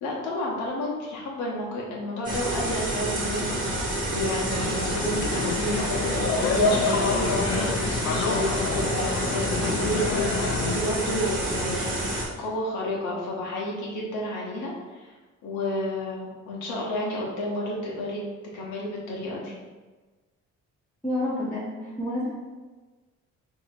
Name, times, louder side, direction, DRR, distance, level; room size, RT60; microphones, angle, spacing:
voice 1, 0.0-11.9 12.4-15.1 15.4-18.2 18.5-19.5, left 1 dB, 80° left, -4 dB, 0.9 m, -31 dB
sound 1, 2.2-12.2, right 1 dB, 30° right, 1.1 m, -28 dB
sound 2, 4.6-10.8, left 4 dB, 55° left, 0.5 m, -28 dB
voice 2, 21.0-22.4, left 1 dB, 5° left, -9 dB, 0.8 m, -29 dB
2.8 x 2.7 x 4.2 m, 1.3 s
cardioid pair, 90°, 30 cm